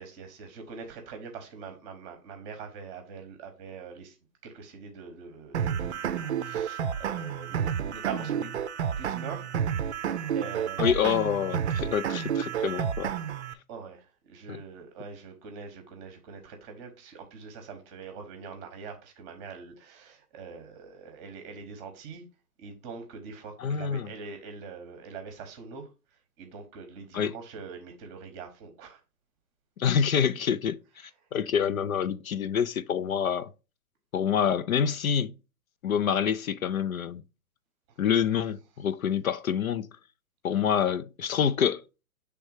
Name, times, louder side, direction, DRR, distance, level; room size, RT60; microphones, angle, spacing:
voice 1, 0.0-4.2 4.4-8.5 9.0-9.5 10.3-11.0 13.7-22.2 22.6-25.9 26.4-29.0 37.9-38.0, right 5 dB, 20° right, 0.9 m, -43 dB
sound 1, 5.5-13.5, right 8 dB, 45° right, 0.5 m, -30 dB
voice 2, 10.8-13.1 14.5-14.6 23.6-24.1 27.1-27.3 29.8-33.5 34.1-35.3 35.8-37.2 38.0-39.9 40.4-41.8, left 8 dB, 60° left, 0.5 m, -27 dB
6.9 x 3.4 x 4.6 m
hypercardioid pair, 135°, 47 cm